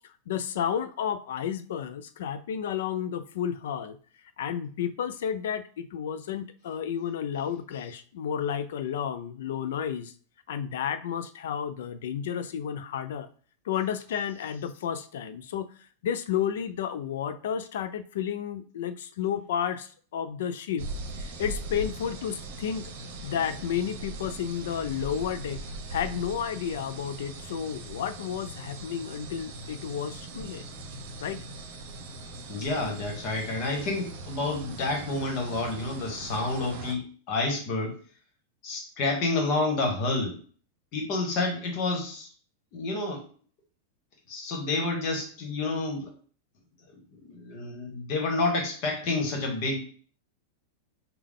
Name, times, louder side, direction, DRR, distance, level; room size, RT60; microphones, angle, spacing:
voice 1, 0.3-4.0 4.4-10.1 10.5-13.3 13.6-15.7 16.0-20.9 21.2-22.9 23.2-25.6 25.9-30.6 31.2-31.4, left 8 dB, 75° left, 13 dB, 0.4 m, -31 dB
sound 1, 20.8-36.9, right 2 dB, 60° right, 0.8 m, -40 dB
voice 2, 32.5-38.0 38.6-40.4 40.9-42.3 42.7-43.2 44.3-46.1 47.1-49.8, left 3 dB, 45° left, 3 dB, 1.3 m, -29 dB
3.6 x 2.2 x 3.7 m, 0.43 s
supercardioid pair, 145°, 0 cm